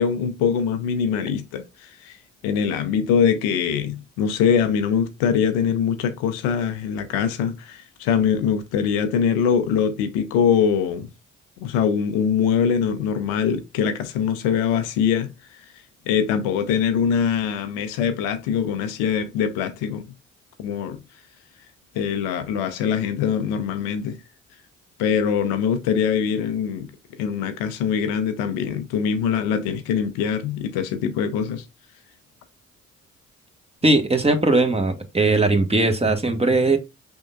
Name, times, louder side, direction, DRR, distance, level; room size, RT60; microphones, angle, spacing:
voice 1, 0.0-2.2 2.4-11.1 11.6-15.3 16.1-20.1 20.6-21.0 21.9-24.2 25.0-26.9 27.2-31.6, left 7 dB, 70° left, 0.7 m, -23 dB
voice 2, 33.8-36.8, right 2 dB, 15° right, 1.2 m, -19 dB
5.3 x 3.5 x 2.3 m
figure-of-eight pair, 40°, 37 cm